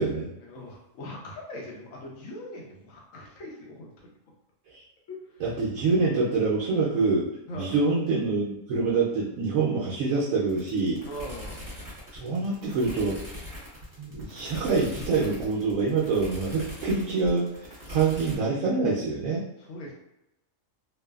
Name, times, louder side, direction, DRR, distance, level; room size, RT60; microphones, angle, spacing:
voice 1, 0.4-4.1 5.1-5.4 7.5-7.8 11.0-11.6 17.9-18.3 19.6-19.9, left 1 dB, 75° left, -2 dB, 1.1 m, -41 dB
voice 2, 5.4-7.3 7.5-11.0 12.2-13.2 14.0-17.6 17.9-19.4, right 4 dB, 85° right, -6 dB, 1.0 m, -25 dB
sound 1, 10.5-18.4, left 1 dB, 20° right, 0.8 m, -41 dB
3.1 x 2.1 x 2.2 m, 0.89 s
omnidirectional pair, 1.4 m